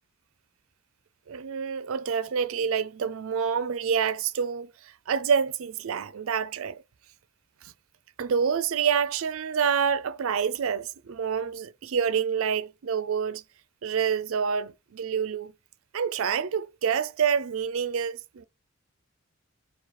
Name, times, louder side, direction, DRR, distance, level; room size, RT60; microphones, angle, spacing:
voice 1, 1.3-6.8 7.6-7.7 8.2-13.4 13.8-15.5 15.9-18.4, right 7 dB, 70° right, 0.4 m, -27 dB
4.6 x 2.3 x 4.1 m
head